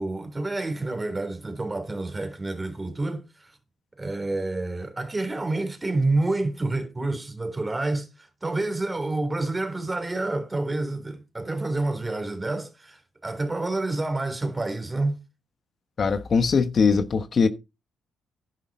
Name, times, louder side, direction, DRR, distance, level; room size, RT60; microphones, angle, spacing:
voice 1, 0.0-3.6 4.0-15.2, right 2 dB, 20° right, 3.6 m, -28 dB
voice 2, 16.0-17.5, left 5 dB, 45° left, 1.1 m, -21 dB
10.5 x 9.6 x 4.3 m
cardioid pair, 90°, 0 cm